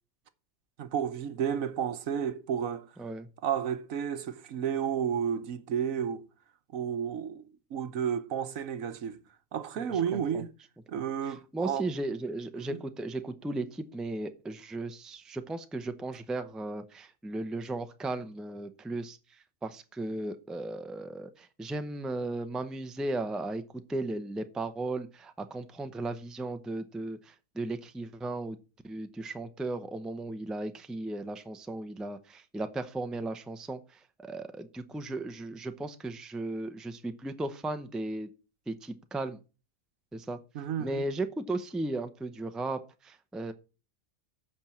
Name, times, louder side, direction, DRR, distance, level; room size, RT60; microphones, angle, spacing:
voice 1, 0.8-2.9 3.4-6.3 6.7-9.2 9.5-10.5 10.9-11.9 12.6-12.8 40.5-41.1, right 8 dB, 80° right, 1.3 m, -32 dB
voice 2, 9.8-10.4 10.9-19.2 19.6-23.6 23.9-28.6 28.8-33.8 34.2-38.3 38.7-39.4 40.1-40.4 40.8-43.5, right 2 dB, ahead, 0.6 m, -36 dB
8.7 x 5.3 x 7.5 m
omnidirectional pair, 1.4 m